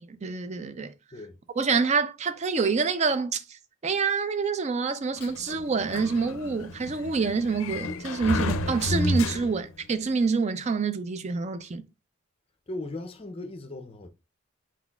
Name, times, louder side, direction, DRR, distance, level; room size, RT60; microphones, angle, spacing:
voice 1, 0.2-0.9 1.6-3.6 3.8-11.8, right 4 dB, 35° right, 0.4 m, -27 dB
Sliding door, 5.2-9.8, left 2 dB, 80° left, 0.4 m, -31 dB
voice 2, 12.7-14.1, left 2 dB, 25° left, 0.5 m, -37 dB
4.4 x 4.0 x 2.3 m
head